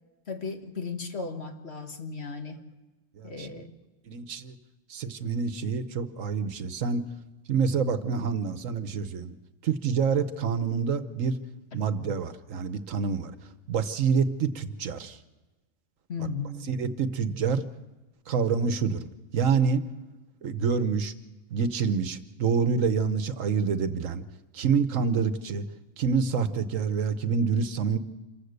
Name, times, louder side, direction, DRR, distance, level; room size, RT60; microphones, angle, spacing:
voice 1, 0.3-2.6 3.2-3.7 16.1-16.7, left 4 dB, 50° left, 6 dB, 1.8 m, -35 dB
voice 2, 3.2-3.6 4.1-4.5 4.9-7.1 7.5-9.3 9.6-11.4 11.7-13.3 13.7-15.2 16.7-17.6 18.3-19.1 19.3-19.8 20.4-21.1 21.5-24.2 24.5-25.6 26.0-28.0, right 5 dB, 75° right, 12 dB, 1.3 m, -27 dB
27.0 x 15.0 x 6.6 m, 1.1 s
omnidirectional pair, 1.4 m